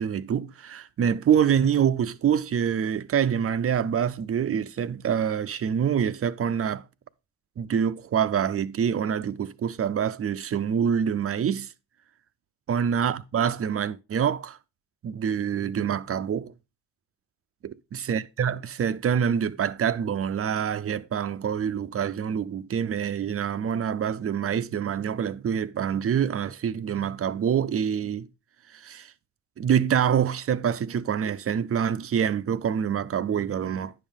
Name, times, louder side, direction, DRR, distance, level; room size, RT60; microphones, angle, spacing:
voice 1, 0.0-6.8 7.6-11.7 12.7-14.6 15.0-16.5 17.9-28.3 28.7-29.1 29.6-33.9, right 8 dB, 40° right, 0.6 m, -26 dB
9.9 x 5.5 x 3.6 m
hypercardioid pair, 55°, 36 cm